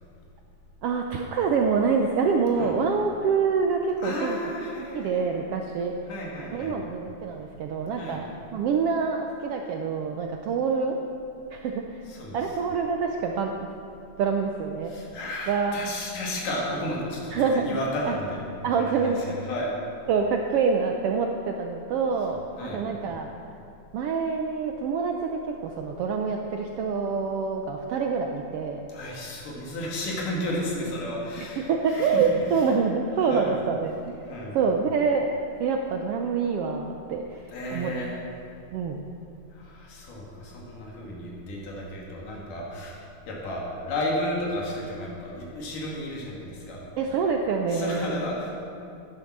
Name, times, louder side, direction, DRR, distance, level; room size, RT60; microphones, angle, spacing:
voice 1, 0.8-4.4 4.9-5.9 6.5-11.0 11.5-12.0 12.3-13.5 14.2-14.9 15.5-15.8 17.3-17.8 18.1-18.2 18.6-19.4 20.1-23.3 23.9-28.8 31.4-34.1 34.5-35.3 35.6-37.9 38.7-39.0 47.0-48.1, right 5 dB, 85° right, 3 dB, 1.3 m, -26 dB
voice 2, 4.0-5.4 6.1-6.8 7.9-8.2 12.1-12.4 14.9-19.7 22.6-22.8 28.9-32.3 33.3-33.5 34.3-34.6 37.5-38.2 39.5-46.8 47.7-48.6, left 1 dB, 85° left, -3 dB, 3.8 m, -33 dB
14.0 x 10.5 x 6.0 m, 2.6 s
omnidirectional pair, 3.6 m